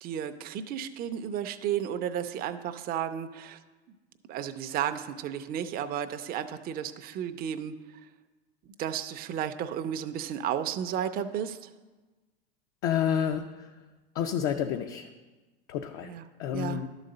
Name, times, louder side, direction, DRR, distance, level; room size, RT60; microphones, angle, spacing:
voice 1, 0.0-3.6 4.3-7.8 8.8-11.7 16.0-16.2 16.5-16.8, right 9 dB, 30° right, 8 dB, 0.5 m, -33 dB
voice 2, 12.8-13.7 14.1-15.1 15.7-16.1 16.4-16.9, left 9 dB, 55° left, 5 dB, 0.6 m, -29 dB
11.5 x 4.0 x 6.5 m, 1.3 s
hypercardioid pair, 100°, 30 cm